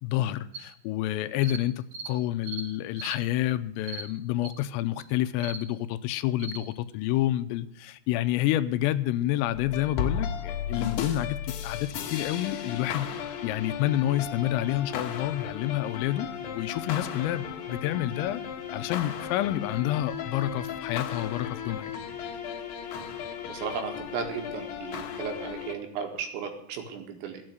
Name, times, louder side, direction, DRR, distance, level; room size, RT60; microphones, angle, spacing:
voice 1, 0.0-13.1 13.4-18.4 18.7-21.9, left 13 dB, 90° left, 12 dB, 3.4 m, -29 dB
sound 1, 0.5-0.6 1.4-1.6 1.9-2.1 2.4-2.7 3.0-3.2 3.8-4.1 4.4-4.5 5.0-5.1 5.4-5.6 6.4-6.6, right 4 dB, 45° right, 2.3 m, -38 dB
sound 2, 9.5-25.7, left 8 dB, 65° left, 3.0 m, -35 dB
voice 2, 23.5-27.4, right 6 dB, 80° right, 4 dB, 4.5 m, -35 dB
13.5 x 8.8 x 7.8 m, 0.74 s
omnidirectional pair, 5.9 m